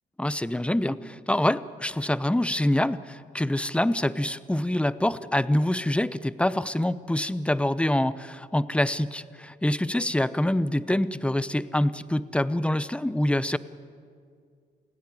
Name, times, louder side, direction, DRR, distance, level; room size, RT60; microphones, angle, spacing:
voice 1, 0.2-13.6, left 1 dB, 5° left, 16 dB, 0.8 m, -25 dB
28.5 x 16.5 x 9.9 m, 2.2 s
cardioid pair, 95°, 19 cm